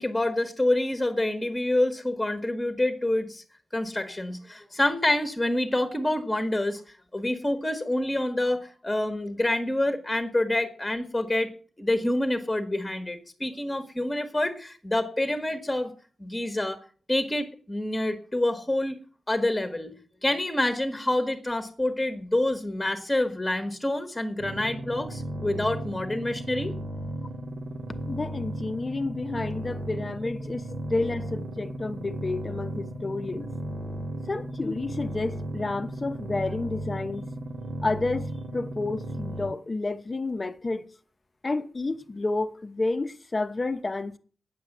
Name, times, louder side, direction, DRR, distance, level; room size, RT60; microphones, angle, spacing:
voice 1, 0.0-3.4 3.7-6.8 7.1-11.5 11.8-15.9 16.2-16.8 17.1-19.0 19.3-19.9 20.2-26.7, left 1 dB, 10° left, 1.4 m, -27 dB
sound 1, 24.4-39.5, right 1 dB, 50° right, 1.5 m, -35 dB
voice 2, 28.1-33.5 34.3-37.3 37.8-40.9 41.4-44.1, left 2 dB, 30° left, 0.9 m, -30 dB
9.5 x 8.7 x 7.3 m
wide cardioid pair, 115°, 0 cm